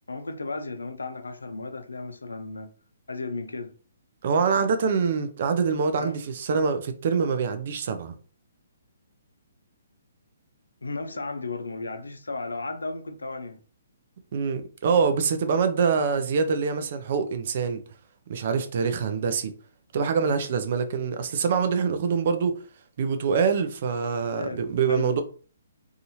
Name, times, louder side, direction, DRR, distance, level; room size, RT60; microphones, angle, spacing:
voice 1, 0.1-2.7 3.1-3.7 6.0-6.2 10.8-13.6 24.3-24.6 24.9-25.2, left 3 dB, 80° left, 0.4 m, -34 dB
voice 2, 4.2-8.1 14.3-17.8 18.3-19.5 19.9-22.6 23.0-25.2, right 5 dB, 50° right, 0.4 m, -25 dB
2.6 x 2.4 x 2.8 m
figure-of-eight pair, 130°, 0 cm